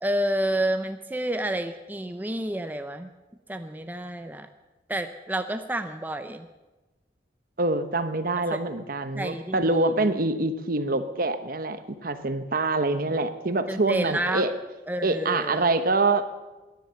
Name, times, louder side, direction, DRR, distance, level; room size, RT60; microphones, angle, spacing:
voice 1, 0.0-3.1 3.5-4.5 4.9-6.5 8.5-8.6 9.1-9.9 13.7-14.5 14.9-15.7, right 1 dB, 10° right, 8 dB, 0.5 m, -29 dB
voice 2, 7.6-14.5 15.0-16.2, right 2 dB, 55° right, 10 dB, 1.0 m, -25 dB
17.5 x 10.5 x 6.9 m, 1.1 s
head